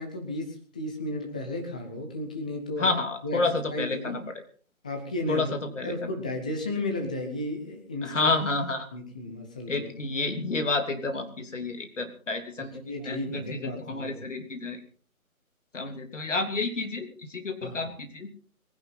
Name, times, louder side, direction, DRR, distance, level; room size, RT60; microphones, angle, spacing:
voice 1, 0.0-2.9 3.2-3.4 3.7-4.2 4.8-5.5 5.8-8.3 8.9-9.9 12.6-14.2 17.6-17.8, left 1 dB, 5° left, 3 dB, 0.7 m, -34 dB
voice 2, 2.8-4.4 5.3-5.9 8.0-8.9 9.7-14.8 15.7-18.3, left 3 dB, 55° left, 6 dB, 3.3 m, -30 dB
22.0 x 10.5 x 5.8 m, 0.44 s
figure-of-eight pair, 150°, 43 cm